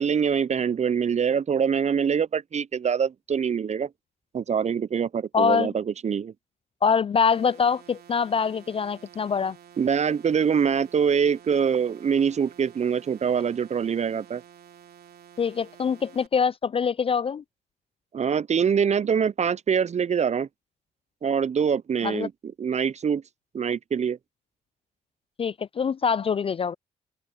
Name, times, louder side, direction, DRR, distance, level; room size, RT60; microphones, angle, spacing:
voice 1, 0.0-3.9 4.3-6.3 9.8-14.4 18.1-20.5 21.2-22.3 22.6-23.2 23.5-24.2, right 7 dB, 35° right, 0.7 m, -24 dB
voice 2, 5.3-5.7 6.8-9.6 15.4-17.4 22.0-22.3 25.4-26.7, left 6 dB, 30° left, 0.4 m, -24 dB
sound 1, 7.3-16.3, right 9 dB, 55° right, 3.4 m, -51 dB
open air
hypercardioid pair, 50°, 19 cm